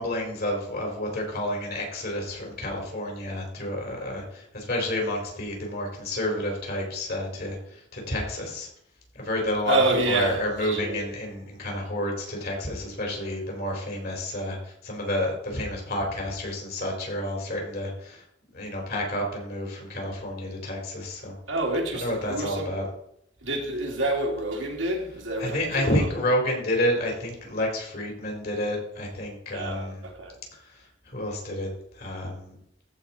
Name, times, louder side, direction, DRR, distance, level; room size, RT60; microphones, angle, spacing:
voice 1, 0.0-8.7 9.1-9.8 10.1-18.2 18.5-21.3 21.9-22.8 25.4-30.0 30.6-30.7 31.1-31.7 31.9-32.5, left 1 dB, 55° left, 4.0 m, -29 dB
voice 2, 9.7-11.1 21.5-22.7 23.4-26.1 29.5-30.4, right 2 dB, 85° right, 2.7 m, -28 dB
14.5 x 5.1 x 4.4 m
head